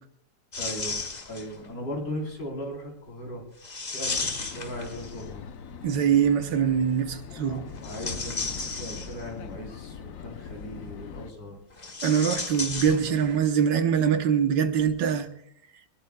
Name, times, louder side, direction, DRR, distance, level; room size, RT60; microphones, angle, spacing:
shower curtain, 0.5-1.7 3.6-5.5 7.7-9.4 11.7-13.5 13.7-13.8 14.8-15.0, left 3 dB, 25° left, 1.2 m, -34 dB
voice 1, 0.6-3.4 3.9-5.4 7.4-11.6, equal, 85° left, 4.7 m, -38 dB
sound 1, 4.1-11.3, left 6 dB, 55° left, 1.1 m, -42 dB
voice 2, 5.8-7.6 12.0-15.3, right 8 dB, 90° right, 1.8 m, -23 dB
23.0 x 19.5 x 2.3 m
omnidirectional pair, 1.9 m